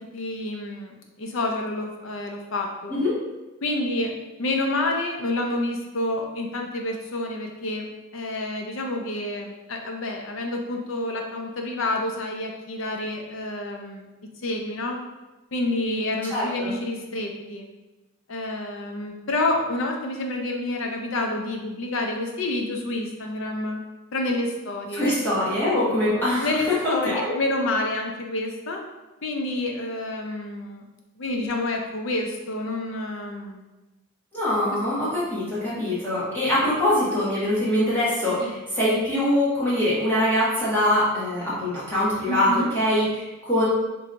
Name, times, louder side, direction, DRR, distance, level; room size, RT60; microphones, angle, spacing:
voice 1, 0.1-3.0 3.6-4.1 4.4-14.1 14.4-15.0 15.5-17.7 18.3-23.8 24.1-25.2 26.4-28.8 29.2-30.8 31.2-33.6 38.4-38.6 42.3-42.7, left 2 dB, 65° left, 2 dB, 0.6 m, -28 dB
voice 2, 16.3-16.7 24.9-27.3 34.3-43.7, left 1 dB, 10° left, -10 dB, 1.3 m, -23 dB
4.4 x 3.0 x 2.6 m, 1.1 s
head